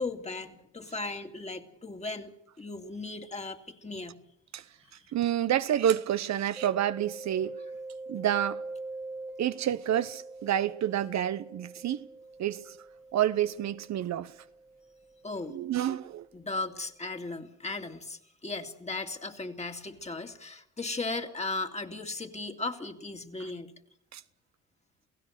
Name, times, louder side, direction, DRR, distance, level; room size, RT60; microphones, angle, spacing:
voice 1, 0.0-4.2 15.2-15.6 16.3-23.7, left 3 dB, 20° left, 2.4 m, -37 dB
voice 2, 5.1-7.6 8.1-8.6 9.4-12.1 12.4-12.8 13.1-14.3 15.5-16.3 24.1-24.2, right 11 dB, 65° right, 0.9 m, -29 dB
Mallet percussion, 6.6-16.1, right 2 dB, 5° right, 1.5 m, -44 dB
29.0 x 16.5 x 6.5 m
cardioid pair, 90°, 30 cm